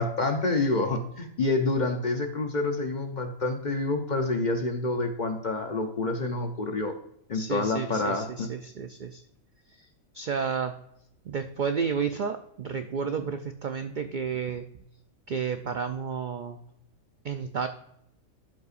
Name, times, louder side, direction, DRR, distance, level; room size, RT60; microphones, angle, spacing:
voice 1, 0.0-6.9 7.3-8.5, left 2 dB, 45° left, 5 dB, 0.6 m, -28 dB
voice 2, 7.3-9.2 9.8-9.9 10.1-10.7 11.3-14.6 15.3-16.6 17.2-17.7, right 6 dB, 80° right, 7 dB, 0.4 m, -31 dB
12.0 x 5.5 x 2.5 m, 0.76 s
omnidirectional pair, 1.4 m